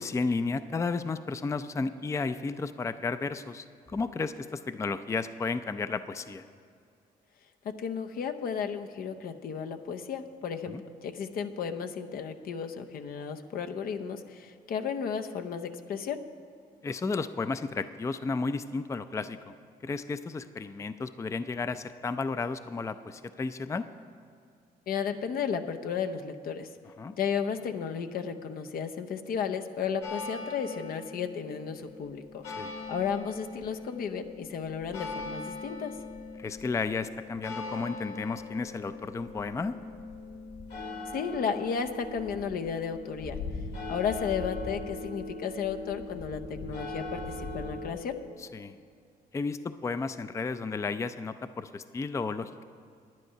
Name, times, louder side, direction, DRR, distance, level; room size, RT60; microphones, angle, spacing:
voice 1, 0.0-6.4 10.6-10.8 16.8-19.5 19.8-23.9 27.0-27.1 32.5-32.7 36.4-39.8 48.4-48.8 49.3-52.6, left 4 dB, 20° left, 12 dB, 0.4 m, -33 dB
voice 2, 7.8-10.8 11.0-16.2 24.9-26.7 27.2-32.4 32.9-35.9 41.1-43.4 43.9-48.2, left 6 dB, 70° left, 7 dB, 0.7 m, -33 dB
sound 1, 30.0-47.9, left 3 dB, 85° left, 2.3 m, -40 dB
10.5 x 9.8 x 5.6 m, 2.3 s
cardioid pair, 85°, 16 cm